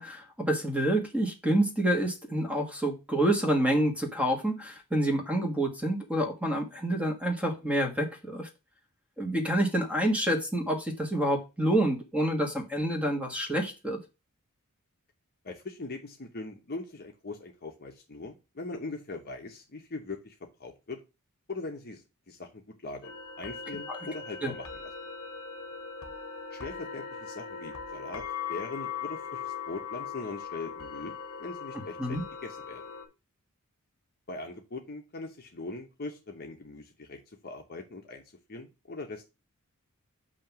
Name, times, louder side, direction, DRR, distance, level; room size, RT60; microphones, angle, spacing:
voice 1, 0.0-8.5 9.2-14.0 23.9-24.0 24.4-24.5 32.0-32.2, right 1 dB, 5° right, 3 dB, 1.4 m, -28 dB
voice 2, 15.4-21.0 21.5-24.9 26.5-28.2 28.5-32.8 34.3-38.2 38.5-39.2, left 3 dB, 45° left, 2 dB, 0.9 m, -41 dB
sound 1, 23.0-33.1, left 6 dB, 65° left, 1.2 m, -40 dB
7.3 x 2.9 x 5.9 m, 0.28 s
head